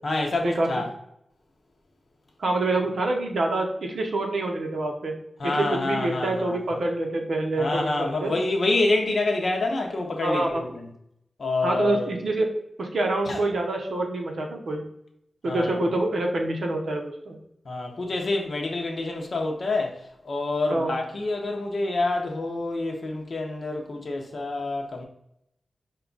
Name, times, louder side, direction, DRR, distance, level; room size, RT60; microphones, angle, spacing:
voice 1, 0.0-0.9 5.4-6.6 7.6-10.8 11.4-12.1 13.3-13.4 15.5-15.8 17.7-19.9 20.2-25.0, left 2 dB, 55° left, 0.7 m, -27 dB
voice 2, 2.4-5.1 5.4-8.3 10.2-10.6 11.6-12.5 12.8-14.8 15.4-17.4 20.7-20.9, right 2 dB, 85° right, 0.8 m, -26 dB
4.7 x 2.3 x 3.8 m
wide cardioid pair, 125°, 0 cm